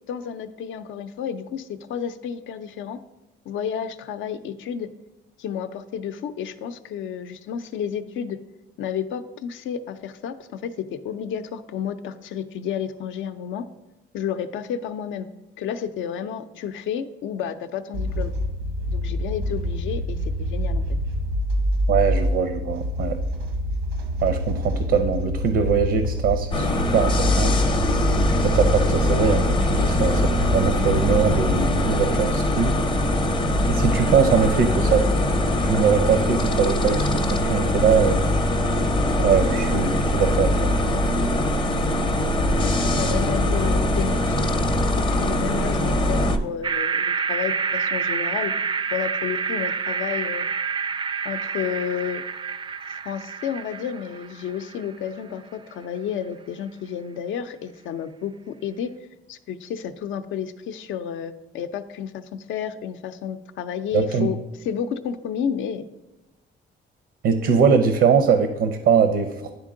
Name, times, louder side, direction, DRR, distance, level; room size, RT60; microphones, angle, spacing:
voice 1, 0.1-3.0 3.5-4.9 5.4-8.4 8.8-13.7 14.1-15.3 15.6-18.3 18.9-21.0 42.6-44.5 45.0-48.5 48.9-50.5 51.2-52.2 52.9-58.9 59.3-65.9, left 8 dB, 75° left, 11 dB, 0.5 m, -31 dB
sound 1, 17.9-31.5, equal, 90° right, 1.0 m, -27 dB
voice 2, 21.9-23.2 24.2-27.6 28.4-32.7 33.7-35.0 35.6-38.2 39.1-40.7 63.9-64.3 67.2-69.5, right 6 dB, 70° right, 7 dB, 0.6 m, -22 dB
sound 2, 26.5-46.4, left 1 dB, 25° left, 0.6 m, -22 dB
sound 3, 46.6-54.8, right 6 dB, 25° right, 0.3 m, -28 dB
10.0 x 3.6 x 3.7 m, 1.0 s
cardioid pair, 90°, 20 cm